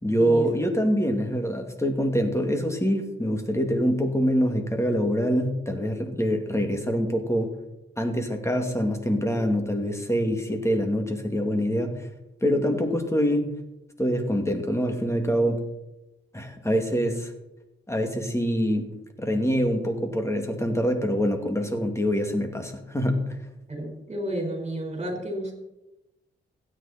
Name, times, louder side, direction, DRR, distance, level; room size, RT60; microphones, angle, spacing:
voice 1, 0.0-7.5 8.0-12.1 12.4-13.5 14.0-15.6 16.3-17.3 17.9-23.4, equal, 15° left, 5 dB, 2.6 m, -25 dB
voice 2, 23.7-25.5, right 1 dB, 30° right, 2 dB, 5.1 m, -31 dB
16.5 x 9.6 x 4.4 m, 0.94 s
cardioid pair, 60°, 20 cm